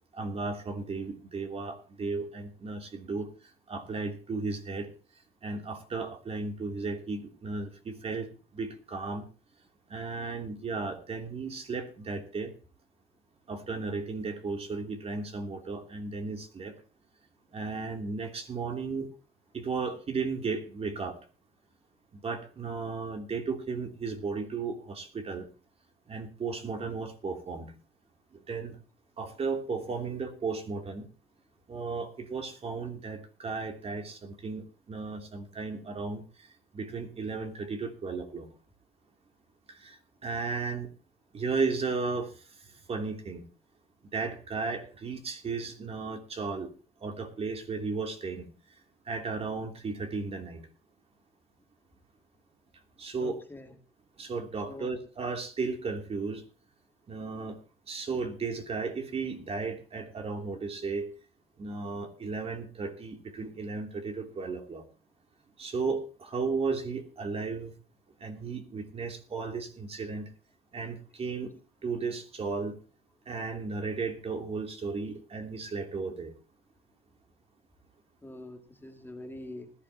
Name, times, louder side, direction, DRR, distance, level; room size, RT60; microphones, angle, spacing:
voice 1, 0.1-3.3 3.7-4.9 5.4-9.2 9.9-12.5 13.5-16.7 17.5-19.1 19.5-21.2 22.2-25.5 26.1-27.7 28.5-28.8 29.2-31.1 31.7-36.2 36.7-38.5 39.7-40.9 41.3-42.3 42.9-43.4 44.1-46.7 47.0-48.5 49.0-50.6 53.0-53.4 54.2-56.4 57.1-57.6 57.9-61.1 61.6-64.8 65.6-67.7 68.2-70.3 70.7-71.6 71.8-72.8 73.3-76.3, right 4 dB, 35° right, 4 dB, 3.1 m, -34 dB
voice 2, 53.2-53.8 54.7-54.9 78.2-79.7, left 1 dB, 10° left, 4 dB, 2.4 m, -44 dB
20.0 x 12.0 x 2.9 m, 0.37 s
cardioid pair, 110°, 17 cm